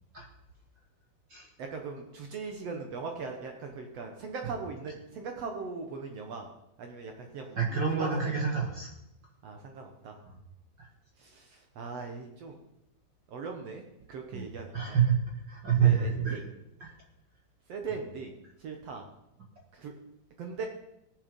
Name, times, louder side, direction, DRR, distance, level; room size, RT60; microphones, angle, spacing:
voice 1, 1.6-6.5 6.8-7.6 7.9-8.4 9.4-10.2 11.2-12.6 13.3-13.8 14.1-15.0 15.8-16.4 17.7-18.3 18.6-19.1 19.7-19.9 20.4-20.7, right 4 dB, 75° right, 3 dB, 1.4 m, -39 dB
voice 2, 7.6-8.9 10.8-10.9 14.3-14.5 14.7-15.1 15.5-16.4 16.8-16.9, right 7 dB, 40° right, -1 dB, 1.7 m, -27 dB
18.5 x 7.2 x 5.3 m, 0.86 s
omnidirectional pair, 4.5 m